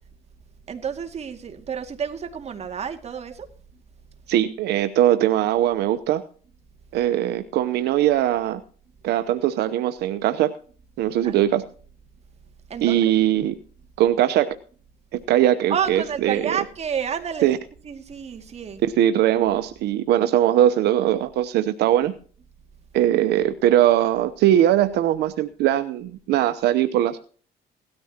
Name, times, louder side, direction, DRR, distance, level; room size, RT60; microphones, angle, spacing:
voice 1, 0.7-3.5 11.2-11.5 12.7-13.0 15.7-17.5 17.8-18.8, right 7 dB, 40° right, 5 dB, 2.2 m, -29 dB
voice 2, 4.3-6.2 6.9-8.6 9.0-10.5 11.0-11.6 12.8-13.6 14.0-14.5 15.1-16.5 17.4-17.6 19.0-22.1 22.9-27.2, right 12 dB, 75° right, 10 dB, 0.9 m, -20 dB
17.5 x 13.0 x 2.9 m, 0.42 s
cardioid pair, 110°, 17 cm